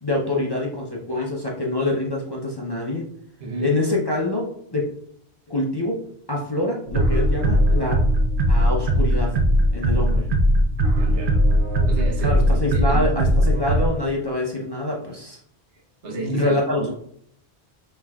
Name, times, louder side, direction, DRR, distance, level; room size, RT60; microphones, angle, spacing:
voice 1, 0.0-3.0 3.6-4.8 5.5-6.0 6.3-8.0 8.5-9.3 9.7-10.3 12.2-15.4 16.1-16.9, left 2 dB, 30° left, -3 dB, 0.6 m, -25 dB
voice 2, 3.4-3.8 11.0-11.4 11.9-13.3 16.0-16.9, right 2 dB, 90° right, 0 dB, 1.2 m, -32 dB
sound 1, 6.9-13.9, equal, 55° right, 0.7 m, -19 dB
5.5 x 3.3 x 2.3 m, 0.68 s
omnidirectional pair, 1.1 m